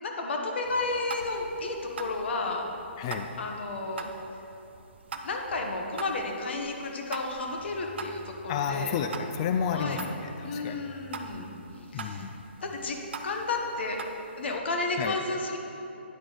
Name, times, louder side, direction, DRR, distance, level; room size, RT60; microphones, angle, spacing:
voice 1, 0.0-2.7 3.4-4.1 5.2-9.0 9.7-10.0 10.4-11.5 11.9-12.3 12.6-13.0 13.2-14.0 14.4-15.6, left 3 dB, 65° left, 2 dB, 1.2 m, -32 dB
sound 1, 0.6-14.6, right 4 dB, 65° right, 0.6 m, -44 dB
voice 2, 3.0-3.3 8.5-10.8 11.9-12.3 15.0-15.2, left 7 dB, 30° left, 6 dB, 0.3 m, -31 dB
9.9 x 4.8 x 4.0 m, 2.8 s
hypercardioid pair, 150°, 6 cm